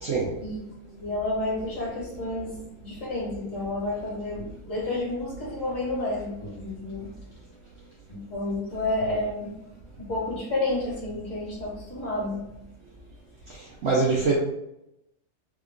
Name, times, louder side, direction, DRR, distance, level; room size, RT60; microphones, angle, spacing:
voice 1, 0.0-0.3 13.5-14.3, right 4 dB, 60° right, -3 dB, 0.7 m, -24 dB
voice 2, 1.0-7.1 8.1-9.6 10.0-12.5, left 2 dB, 55° left, -5 dB, 1.9 m, -30 dB
3.5 x 2.3 x 3.7 m, 0.84 s
omnidirectional pair, 1.6 m